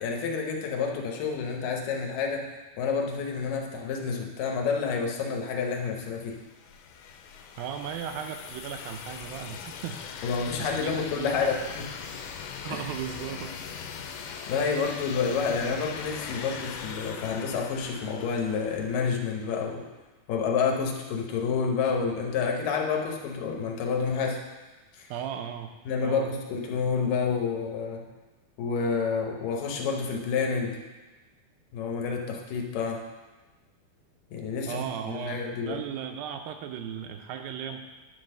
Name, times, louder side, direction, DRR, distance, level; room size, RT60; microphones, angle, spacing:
voice 1, 0.0-2.5 2.8-6.4 10.2-11.9 12.7-12.8 14.5-19.9 20.3-24.4 25.0-25.1 25.9-28.1 28.6-30.8 31.7-33.0 34.3-35.8, left 5 dB, 70° left, 1 dB, 2.4 m, -29 dB
sound 1, 5.8-19.5, left 6 dB, 90° left, 2.5 m, -40 dB
voice 2, 7.6-10.0 10.6-11.6 12.6-13.6 14.1-14.2 25.1-25.7 26.0-26.3 26.7-26.8 34.7-37.9, right 8 dB, 80° right, 6 dB, 2.2 m, -36 dB
10.0 x 3.9 x 6.4 m, 1.2 s
omnidirectional pair, 4.4 m